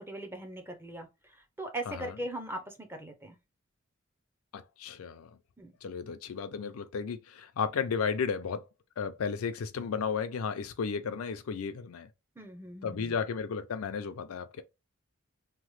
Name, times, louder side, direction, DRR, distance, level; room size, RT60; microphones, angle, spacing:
voice 1, 0.0-3.4 5.6-5.7 12.4-13.1, right 1 dB, 10° right, 0.5 m, -40 dB
voice 2, 4.5-5.3 5.8-8.7 9.0-12.1 12.8-14.6, left 6 dB, 90° left, 0.4 m, -34 dB
2.9 x 2.1 x 3.0 m
head